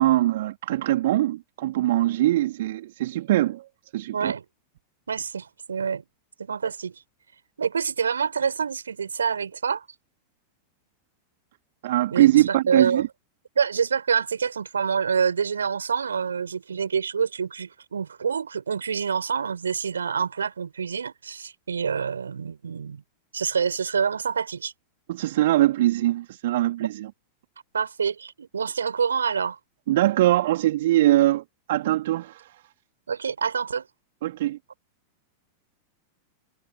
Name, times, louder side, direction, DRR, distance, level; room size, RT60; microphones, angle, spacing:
voice 1, 0.0-3.6 3.9-4.3 11.8-13.1 25.1-27.1 29.9-32.6 34.2-34.6, right 15 dB, 55° right, 3.0 m, -22 dB
voice 2, 4.1-4.4 5.1-6.1 6.4-7.0 7.6-9.9 12.1-13.0 13.5-23.0 23.3-24.7 27.7-29.6 33.1-33.9, right 6 dB, 70° right, 6.5 m, -27 dB
figure-of-eight pair, 90°, 0 cm